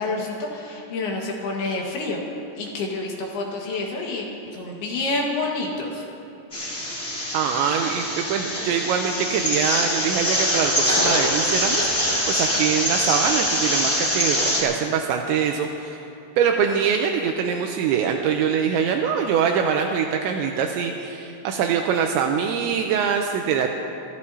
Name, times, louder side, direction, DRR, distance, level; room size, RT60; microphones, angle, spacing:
voice 1, 0.0-2.2 2.6-4.3 4.5-6.0, left 2 dB, 65° left, -2 dB, 3.2 m, -28 dB
sound 1, 6.5-14.6, equal, 20° left, 2.3 m, -24 dB
voice 2, 7.3-16.0 16.4-23.7, right 7 dB, 80° right, 3 dB, 2.8 m, -23 dB
28.0 x 14.0 x 2.8 m, 2.7 s
omnidirectional pair, 5.5 m